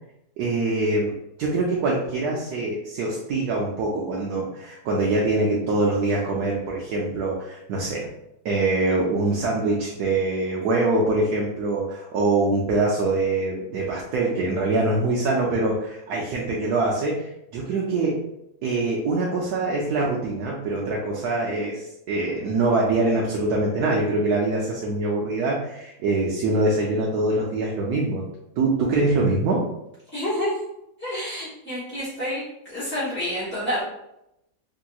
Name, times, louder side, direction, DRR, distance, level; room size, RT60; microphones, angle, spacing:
voice 1, 0.4-1.1 1.4-8.1 8.4-18.2 18.6-28.2 28.6-29.6, right 2 dB, 75° right, -3 dB, 1.1 m, -24 dB
voice 2, 30.1-30.6 31.0-32.4 32.7-33.8, equal, 10° left, -12 dB, 0.5 m, -28 dB
3.3 x 2.8 x 2.3 m, 0.84 s
omnidirectional pair, 1.7 m